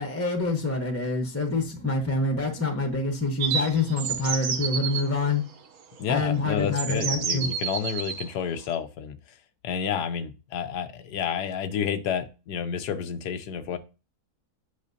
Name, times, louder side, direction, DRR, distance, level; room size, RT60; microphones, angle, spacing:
voice 1, 0.0-5.4 6.1-7.5, left 3 dB, 10° left, 5 dB, 0.8 m, -26 dB
sound 1, 3.4-5.0 6.1-6.2 6.8-8.3, right 7 dB, 65° right, 1.3 m, -30 dB
voice 2, 6.0-9.2 9.6-13.8, left 8 dB, 90° left, 9 dB, 1.3 m, -30 dB
8.3 x 5.6 x 2.7 m, 0.31 s
omnidirectional pair, 1.7 m